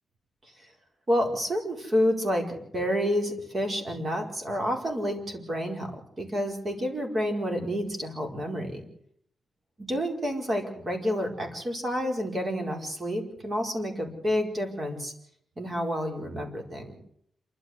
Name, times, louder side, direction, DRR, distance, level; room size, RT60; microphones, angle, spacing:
voice 1, 1.1-5.9 6.2-8.8 9.9-15.1 15.6-17.0, equal, 30° right, 3 dB, 4.9 m, -29 dB
27.5 x 13.0 x 8.0 m, 0.69 s
wide cardioid pair, 135°, 0 cm